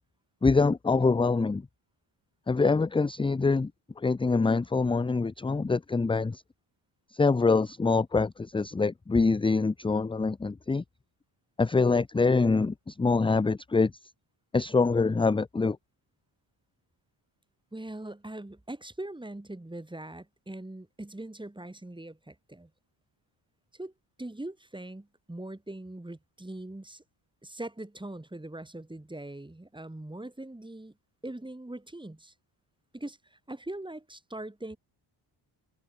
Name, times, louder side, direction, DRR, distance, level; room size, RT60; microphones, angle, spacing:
voice 1, 0.4-1.6 2.5-3.7 4.0-6.4 7.1-10.8 11.6-13.9 14.5-15.8, left 4 dB, 10° left, 0.4 m, -25 dB
voice 2, 17.7-22.7 23.7-23.9 24.2-27.0 27.4-30.9 31.2-32.3 32.9-34.8, right 1 dB, 10° right, 5.7 m, -41 dB
wide cardioid pair, 125°, 47 cm